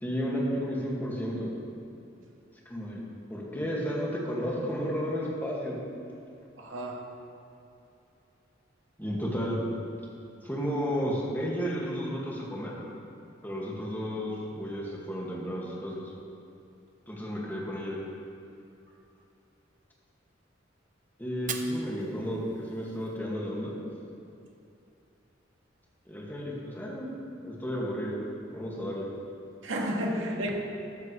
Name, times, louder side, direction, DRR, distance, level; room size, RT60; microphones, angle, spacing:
voice 1, 0.0-1.5 2.7-3.0 3.3-5.8 9.0-9.6 10.4-12.7 13.4-16.0 17.1-18.0 21.2-23.8 26.1-27.1 27.4-28.2 28.5-29.1, equal, 10° left, -5 dB, 2.2 m, -32 dB
voice 2, 6.6-7.2 18.5-18.6 29.6-30.5, equal, 90° right, 0 dB, 1.8 m, -32 dB
Fire, 21.3-23.3, right 7 dB, 45° right, 0.8 m, -42 dB
14.0 x 13.0 x 3.3 m, 2.7 s
head